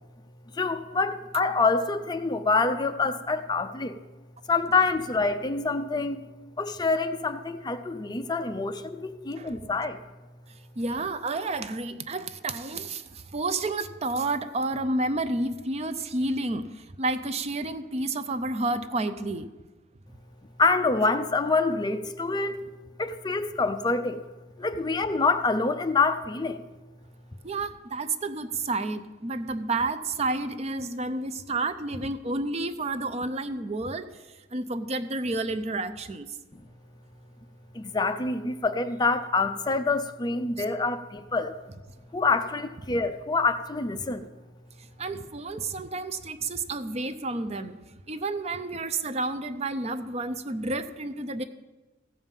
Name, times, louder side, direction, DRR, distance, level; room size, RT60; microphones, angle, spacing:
voice 1, 0.5-4.0 4.5-6.2 6.6-10.0 20.6-22.6 23.0-24.2 24.6-26.7 37.7-41.5 42.1-44.3, left 3 dB, 20° left, 9 dB, 0.5 m, -26 dB
voice 2, 10.8-19.5 27.4-36.4 40.6-40.7 44.8-51.4, right 2 dB, 35° right, 11 dB, 0.5 m, -30 dB
15.0 x 5.3 x 7.3 m, 1.2 s
head